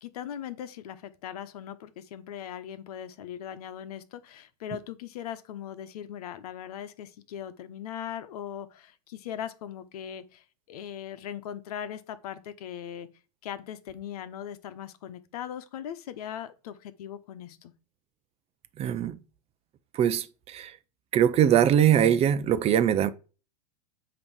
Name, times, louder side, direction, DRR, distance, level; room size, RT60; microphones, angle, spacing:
voice 1, 0.0-13.1 13.4-17.7, left 9 dB, 70° left, 1.1 m, -39 dB
voice 2, 18.8-19.1 20.0-20.7 21.1-23.1, right 9 dB, 30° right, 0.7 m, -22 dB
8.6 x 3.1 x 6.3 m
hypercardioid pair, 115°, 20 cm